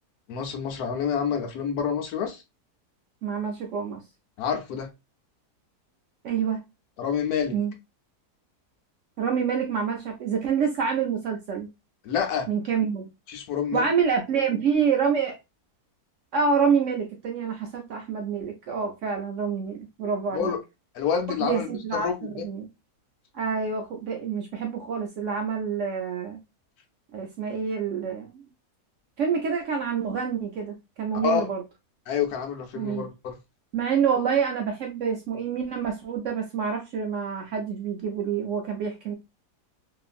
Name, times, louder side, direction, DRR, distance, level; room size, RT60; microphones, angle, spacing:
voice 1, 0.3-2.4 4.4-4.9 7.0-7.6 12.0-12.5 13.3-13.9 20.3-20.6 20.9-22.4 31.2-31.5 32.1-33.4, left 7 dB, 75° left, 1.1 m, -28 dB
voice 2, 3.2-4.0 6.2-6.6 7.5-7.7 9.2-11.7 12.5-13.1 13.7-15.4 16.3-20.5 21.4-22.7 23.3-26.4 27.1-28.4 29.2-31.6 32.7-33.1 33.7-39.1, right 6 dB, 70° right, 0.7 m, -27 dB
2.8 x 2.5 x 2.3 m
omnidirectional pair, 1.7 m